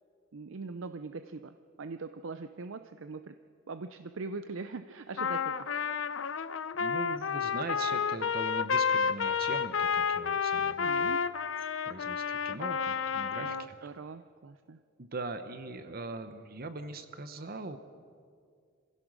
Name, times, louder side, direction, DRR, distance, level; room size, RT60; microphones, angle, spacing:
voice 1, 0.3-3.4 3.7-5.7 10.8-11.3 13.4-14.8, right 4 dB, 90° right, 10 dB, 0.6 m, -42 dB
Trumpet, 5.2-13.7, left 6 dB, 85° left, 0.6 m, -30 dB
voice 2, 6.8-11.2 11.9-13.9 15.0-17.8, right 3 dB, 50° right, 10 dB, 0.9 m, -41 dB
26.5 x 16.0 x 6.2 m, 2.2 s
head